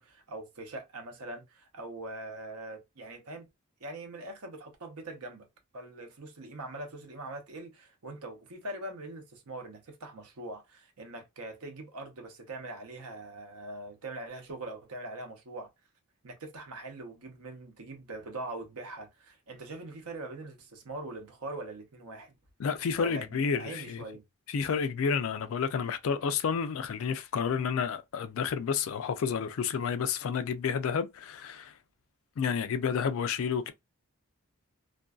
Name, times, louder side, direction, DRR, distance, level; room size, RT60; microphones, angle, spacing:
voice 1, 0.0-3.5 3.8-5.5 5.7-15.7 16.2-22.3 23.0-24.2, right 2 dB, 85° right, 0.8 m, -42 dB
voice 2, 22.6-24.0 24.5-31.7 32.4-33.7, left 6 dB, 70° left, 0.3 m, -30 dB
2.5 x 2.2 x 2.2 m
head